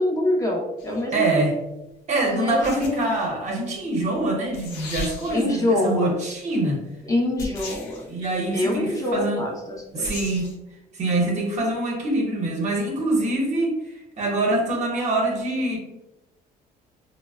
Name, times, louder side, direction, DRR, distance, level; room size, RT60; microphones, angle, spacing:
voice 1, 0.0-1.4 2.2-3.1 5.3-6.1 7.1-8.0 8.5-10.1, left 1 dB, 20° left, -1 dB, 0.6 m, -25 dB
sound 1, 0.8-1.0 2.6-3.3 4.2-4.3 4.5-5.6 7.4-8.1 10.0-10.6, left 2 dB, 90° left, 0.6 m, -36 dB
voice 2, 1.1-1.5 2.1-6.8 8.1-9.5 9.9-10.5 10.9-15.8, right 2 dB, 45° right, 0 dB, 0.9 m, -24 dB
3.9 x 2.1 x 2.3 m, 0.97 s
cardioid pair, 110°, 17 cm